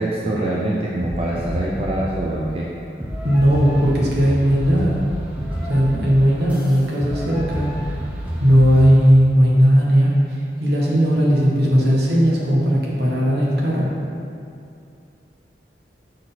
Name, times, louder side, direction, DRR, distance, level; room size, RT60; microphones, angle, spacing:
voice 1, 0.0-2.7, right 1 dB, 35° right, -4 dB, 0.5 m, -24 dB
sound 1, 1.0-2.3 3.0-9.0, equal, 10° right, 0.8 m, -29 dB
voice 2, 3.2-5.0 5.7-7.7 8.4-10.1 10.6-13.9, equal, 65° right, -5 dB, 1.5 m, -16 dB
6.2 x 4.4 x 5.7 m, 2.5 s
head